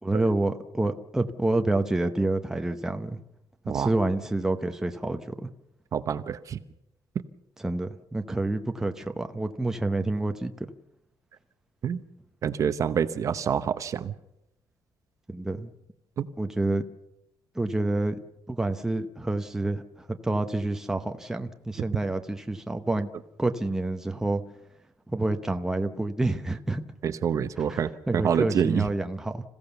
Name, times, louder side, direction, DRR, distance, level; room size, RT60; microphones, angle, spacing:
voice 1, 0.0-3.2 3.7-5.5 7.6-10.7 15.3-15.7 16.4-16.9 17.5-18.2 18.5-23.1 23.4-24.4 25.1-26.8 27.7-27.8 28.1-29.4, right 2 dB, 5° right, 6 dB, 0.9 m, -28 dB
voice 2, 5.9-6.6 11.8-12.0 12.4-14.2 16.2-16.3 27.0-28.9, right 8 dB, 45° right, 11 dB, 0.9 m, -27 dB
27.0 x 16.0 x 7.0 m, 0.85 s
cardioid pair, 170°, 8 cm